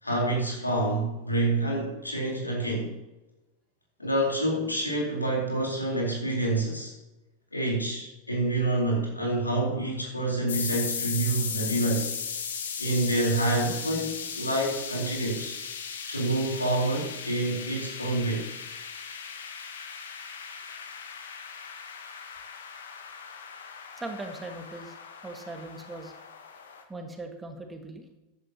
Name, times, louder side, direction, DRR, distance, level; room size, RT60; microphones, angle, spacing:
voice 1, 0.0-3.0 4.0-6.9 7.5-12.1 12.8-15.5 16.1-18.5, right 2 dB, 85° left, -1 dB, 3.9 m, -27 dB
sound 1, 10.5-26.8, left 6 dB, 65° left, 1.4 m, -37 dB
voice 2, 24.0-25.0 25.2-26.1 26.9-28.1, right 2 dB, 10° right, 4 dB, 1.9 m, -39 dB
14.0 x 11.0 x 3.0 m, 1.0 s
figure-of-eight pair, 90°, 0 cm